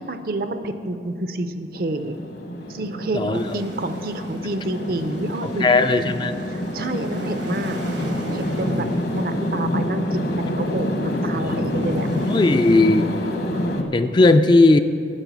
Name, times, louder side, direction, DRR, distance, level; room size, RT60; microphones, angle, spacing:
voice 1, 0.0-2.2 2.7-6.0 6.5-7.8 8.3-8.9 9.1-12.1 12.3-12.5, right 2 dB, 55° right, 9 dB, 0.6 m, -28 dB
sound 1, 1.7-13.8, left 1 dB, 65° left, 1.1 m, -27 dB
voice 2, 3.1-3.6 5.4-6.4 8.8-8.9 11.5-11.9 12.3-13.1 13.9-14.8, left 2 dB, 25° left, 9 dB, 0.3 m, -17 dB
sound 2, 3.3-12.8, right 2 dB, 75° right, 1.4 m, -42 dB
9.9 x 6.3 x 8.3 m, 2.6 s
head